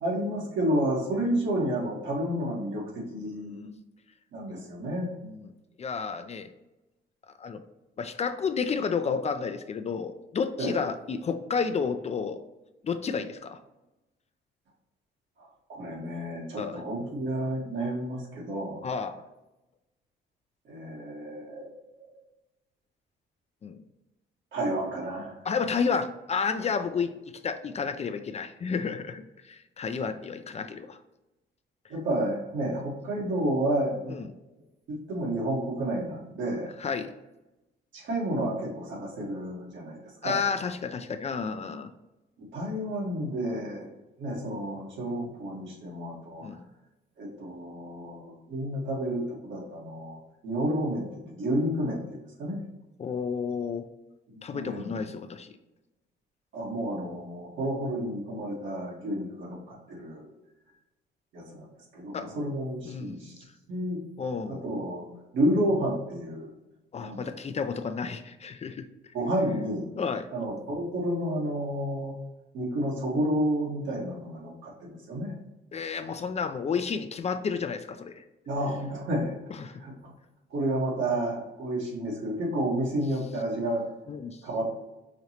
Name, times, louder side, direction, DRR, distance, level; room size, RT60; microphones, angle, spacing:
voice 1, 0.0-3.7 4.3-5.1 10.6-10.9 15.4-18.8 20.6-21.7 22.0-22.1 24.5-25.4 31.9-34.2 34.9-36.7 37.9-40.4 42.4-43.9 44.2-46.6 47.2-52.6 54.3-55.0 56.5-60.3 61.3-61.7 61.9-63.4 63.7-64.0 64.5-65.1 65.3-66.5 67.0-67.3 69.1-69.9 70.3-72.1 72.5-75.3 78.5-79.4 79.8-80.1 80.5-83.8 84.4-84.7, right 1 dB, 70° right, -2 dB, 1.5 m, -31 dB
voice 2, 3.3-3.7 5.2-5.5 5.8-6.5 7.4-7.6 8.0-12.4 12.8-13.6 16.6-16.8 18.8-19.2 23.6-23.8 25.4-27.1 27.4-31.0 34.1-34.3 36.8-37.1 40.2-41.9 46.4-46.7 53.0-53.9 54.4-55.5 62.1-62.3 62.9-63.2 64.2-64.6 66.9-68.9 70.0-70.3 75.7-78.2 79.5-79.8 84.1-84.4, left 5 dB, 35° left, 9 dB, 0.3 m, -31 dB
5.0 x 3.0 x 2.9 m, 1.0 s
cardioid pair, 90°, 20 cm